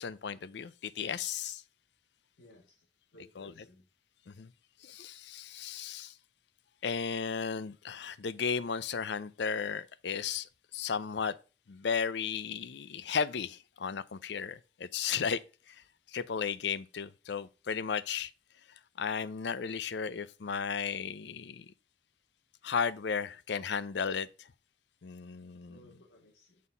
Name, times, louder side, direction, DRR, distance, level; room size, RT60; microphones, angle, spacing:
voice 1, 0.0-1.6 3.4-3.5 4.3-4.5 4.8-6.1 6.8-11.4 11.7-15.4 15.7-15.8 16.1-18.3 19.0-21.7 22.6-24.3 25.0-25.8, left 6 dB, 70° left, 0.5 m, -34 dB
voice 2, 2.4-3.8 25.7-26.6, left 1 dB, 90° left, 1.8 m, -59 dB
7.3 x 4.2 x 5.4 m
head